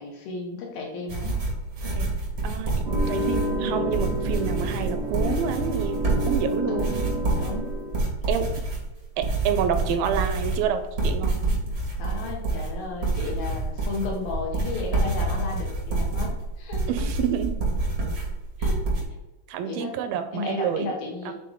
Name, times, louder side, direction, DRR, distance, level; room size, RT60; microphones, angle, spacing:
voice 1, 0.0-1.4 6.7-6.9 7.4-7.7 12.0-17.1 18.6-18.8 19.6-19.9 20.3-21.3, left 3 dB, 80° left, 0 dB, 3.1 m, -34 dB
sound 1, 1.1-19.0, right 2 dB, 60° right, 0.9 m, -27 dB
voice 2, 2.4-7.0 8.3-8.6 9.2-11.3 16.9-17.7 19.5-20.9 21.3-21.4, right 8 dB, 85° right, 9 dB, 2.3 m, -28 dB
sound 2, 2.8-8.0, equal, 35° right, 1.0 m, -30 dB
8.5 x 4.0 x 3.6 m, 1.0 s
omnidirectional pair, 4.3 m